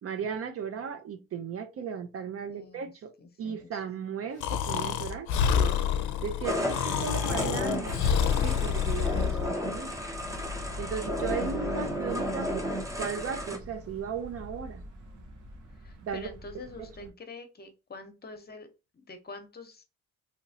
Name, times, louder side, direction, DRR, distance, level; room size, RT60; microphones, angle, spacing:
voice 1, 0.0-5.7 6.2-8.0 8.4-10.0 10.8-12.7 13.0-14.8 16.0-16.3 16.8-17.1, right 7 dB, 50° right, 0.5 m, -36 dB
voice 2, 2.5-2.9 3.2-3.8 7.0-8.1 11.3-12.1 15.8-18.7 18.9-19.8, left 3 dB, 30° left, 0.8 m, -45 dB
Breathing, 4.4-9.5, left 8 dB, 75° left, 0.5 m, -27 dB
sound 1, 6.4-13.6, equal, 10° right, 0.8 m, -33 dB
sound 2, 7.2-17.1, left 1 dB, 80° right, 1.1 m, -43 dB
3.0 x 2.8 x 2.7 m
cardioid pair, 90°, 30 cm